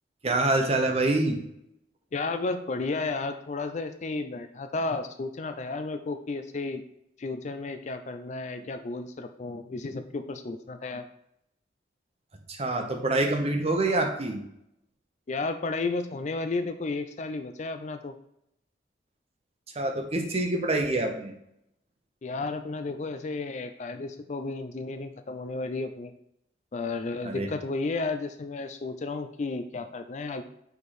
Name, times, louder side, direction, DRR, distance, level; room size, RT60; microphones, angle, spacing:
voice 1, 0.2-1.4 12.5-14.4 19.7-21.3 27.2-27.5, right 2 dB, 35° right, 3 dB, 0.9 m, -26 dB
voice 2, 2.1-6.8 7.2-11.1 15.3-18.1 22.2-26.1 26.7-30.4, left 3 dB, 40° left, 9 dB, 0.4 m, -33 dB
5.0 x 4.5 x 4.2 m, 0.78 s
head